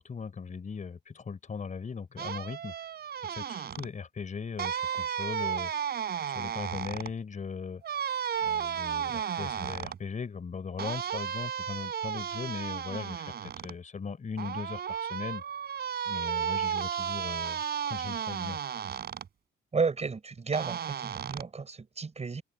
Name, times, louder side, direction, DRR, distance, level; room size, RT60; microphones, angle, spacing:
voice 1, 0.0-2.7 3.2-5.7 6.2-7.8 8.4-15.4 16.1-18.6, left 5 dB, 40° left, 4.2 m, -39 dB
sound 1, 2.2-3.9 4.6-7.1 7.8-10.0 10.8-13.7 14.4-19.3 20.5-21.4, right 8 dB, 55° right, 4.5 m, -34 dB
voice 2, 19.7-22.4, right 4 dB, 35° right, 5.6 m, -32 dB
cardioid pair, 90°, 20 cm